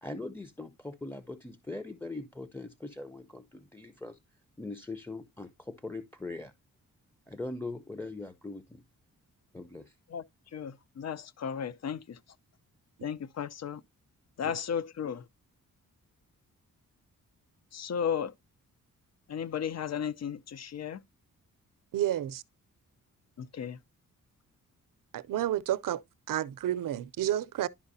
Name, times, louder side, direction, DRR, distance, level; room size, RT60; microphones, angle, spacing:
voice 1, 0.0-4.2 4.6-6.5 7.3-8.8 9.5-9.9, left 2 dB, 5° left, 0.7 m, -41 dB
voice 2, 10.5-12.2 13.0-13.8 14.4-15.2 17.7-18.3 19.3-21.0 23.4-23.8, left 8 dB, 50° left, 0.7 m, -34 dB
voice 3, 21.9-22.4 25.1-26.0 26.3-27.7, right 12 dB, 75° right, 0.6 m, -30 dB
11.5 x 4.7 x 2.7 m
cardioid pair, 80°, 33 cm